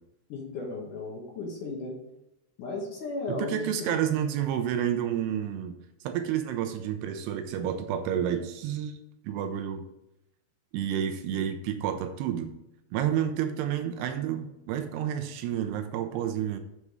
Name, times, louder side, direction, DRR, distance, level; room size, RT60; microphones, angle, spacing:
voice 1, 0.3-2.0 2.6-3.9 11.3-11.4, left 3 dB, 60° left, -1 dB, 2.3 m, -35 dB
voice 2, 3.3-5.7 6.0-9.0 9.2-9.9 10.7-12.5 12.9-16.6, right 9 dB, 80° right, 7 dB, 2.6 m, -30 dB
7.3 x 6.7 x 4.8 m, 0.89 s
omnidirectional pair, 4.9 m